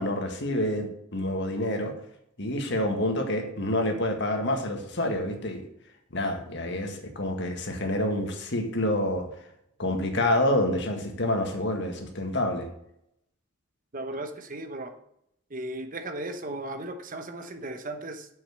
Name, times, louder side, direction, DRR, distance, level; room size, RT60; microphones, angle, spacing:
voice 1, 0.0-1.9 2.4-5.6 6.1-9.3 9.8-12.7, left 1 dB, 60° left, 4 dB, 1.8 m, -28 dB
voice 2, 13.9-14.9 15.5-18.3, right 1 dB, 40° right, 6 dB, 1.1 m, -36 dB
7.3 x 6.3 x 7.9 m, 0.76 s
head